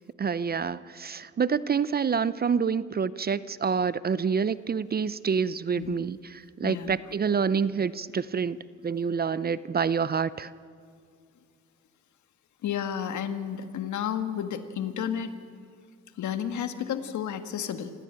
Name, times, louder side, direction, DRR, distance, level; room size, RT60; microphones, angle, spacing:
voice 1, 0.2-8.6 8.8-10.5, right 6 dB, 30° right, 17 dB, 0.6 m, -27 dB
voice 2, 6.6-6.9 12.6-15.3 16.2-17.9, left 9 dB, 70° left, 9 dB, 1.7 m, -31 dB
26.0 x 16.0 x 8.8 m, 2.3 s
cardioid pair, 90°, 30 cm